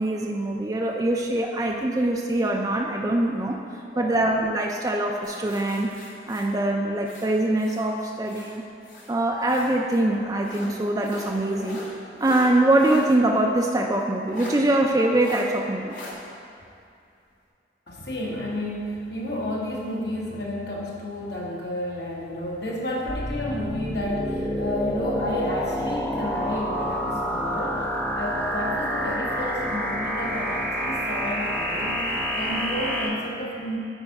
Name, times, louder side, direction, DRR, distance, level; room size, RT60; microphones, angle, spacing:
voice 1, 0.0-3.6 4.0-5.9 6.3-8.6 9.1-11.8 12.2-15.9, right 1 dB, 20° right, 1 dB, 0.4 m, -23 dB
voice 2, 3.9-4.3 17.9-33.8, left 1 dB, 70° left, -4 dB, 1.4 m, -31 dB
sound 1, 5.2-7.9 8.2-9.8 10.4-13.1 13.5-13.6 14.3-14.6 15.2-15.5 15.9-16.1, left 2 dB, 50° left, 1.4 m, -41 dB
sound 2, 23.1-33.1, equal, 10° left, 0.7 m, -28 dB
9.7 x 4.1 x 4.7 m, 2.5 s
head